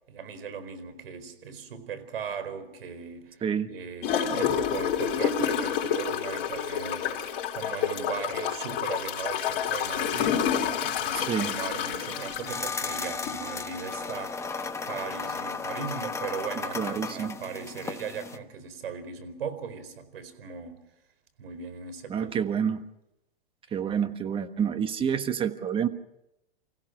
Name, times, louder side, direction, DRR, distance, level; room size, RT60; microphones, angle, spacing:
voice 1, 0.1-7.2 7.5-14.4 14.8-20.8 21.4-22.5, right 6 dB, 80° right, 12 dB, 4.5 m, -38 dB
voice 2, 3.4-3.7 11.1-11.5 16.7-17.4 22.1-22.8 23.7-25.9, right 8 dB, 20° right, 9 dB, 1.4 m, -28 dB
Gurgling / Toilet flush, 4.0-13.4 13.9-14.0, left 8 dB, 45° left, 4.3 m, -29 dB
sound 1, 11.7-18.4, left 4 dB, 10° left, 1.2 m, -35 dB
29.5 x 16.5 x 6.5 m, 0.88 s
hypercardioid pair, 135°, 29 cm